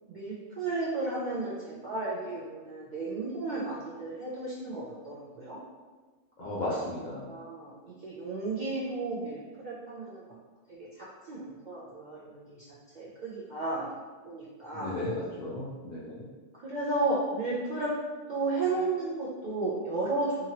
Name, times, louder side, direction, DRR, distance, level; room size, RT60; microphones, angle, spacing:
voice 1, 0.1-5.6 6.4-6.9 7.3-10.3 10.7-12.6 12.9-13.9 14.2-15.0 16.6-17.9 18.3-20.5, right 2 dB, 55° right, -7 dB, 0.5 m, -33 dB
voice 2, 6.4-7.3 14.7-16.3, left 1 dB, 60° left, -8 dB, 0.4 m, -35 dB
2.8 x 2.5 x 2.8 m, 1.3 s
omnidirectional pair, 1.3 m